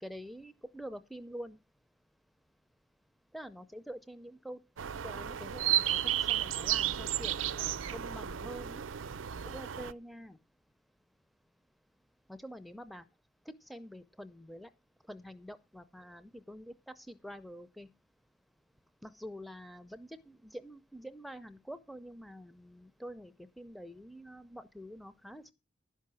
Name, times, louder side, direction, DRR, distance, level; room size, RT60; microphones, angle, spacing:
voice 1, 0.0-1.6 3.3-4.6 5.0-6.0 6.3-8.8 9.4-10.4 12.3-13.0 13.5-14.7 15.1-17.9 19.0-25.5, equal, ahead, 11 dB, 0.5 m, -46 dB
sound 1, 4.8-9.9, right 11 dB, 90° right, 0.5 m, -33 dB
11.0 x 5.7 x 7.4 m, 0.28 s
head